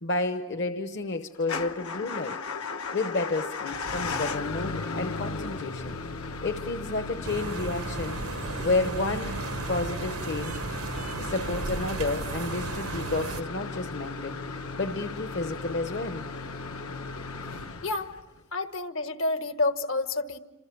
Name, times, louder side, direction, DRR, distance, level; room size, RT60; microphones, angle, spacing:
voice 1, 0.0-2.4 2.9-5.9 6.4-8.2 8.6-9.4 9.7-10.6 11.2-14.4 14.8-16.2, left 2 dB, 50° left, 7 dB, 0.9 m, -31 dB
Motor vehicle (road) / Engine starting / Idling, 1.4-18.4, left 3 dB, 85° left, 1.4 m, -36 dB
sound 1, 7.2-13.4, right 4 dB, 85° right, 0.9 m, -35 dB
voice 2, 17.8-18.1 18.5-20.4, left 2 dB, 70° left, 9 dB, 1.5 m, -29 dB
28.0 x 27.0 x 7.0 m, 1.1 s
head